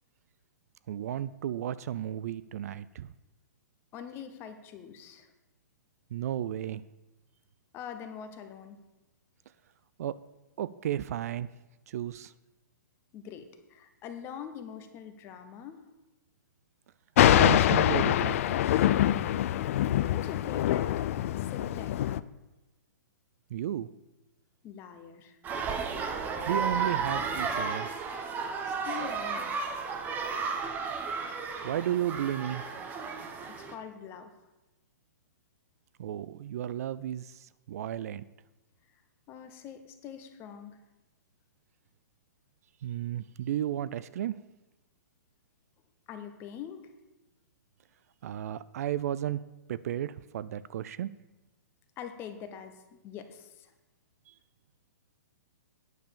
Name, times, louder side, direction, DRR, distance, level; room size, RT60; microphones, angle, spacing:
voice 1, 0.9-3.1 6.1-6.8 10.0-10.1 10.6-11.5 11.9-12.3 17.3-18.9 23.5-23.9 26.5-27.9 31.6-32.6 36.0-38.2 42.8-44.4 48.2-49.4 49.7-51.1, right 11 dB, 55° right, 16 dB, 0.3 m, -33 dB
voice 2, 3.9-5.3 7.7-8.8 13.1-15.8 20.1-20.9 21.3-22.0 24.6-25.4 28.6-29.6 33.7-34.3 39.3-40.8 46.1-46.9 52.0-53.7, left 8 dB, 25° left, 8 dB, 0.9 m, -43 dB
Thunder, 17.2-22.2, left 12 dB, 50° left, 0.3 m, -24 dB
sound 1, 25.4-33.7, right 5 dB, 15° right, 0.8 m, -33 dB
9.3 x 5.4 x 6.8 m, 1.1 s
hypercardioid pair, 145°, 10 cm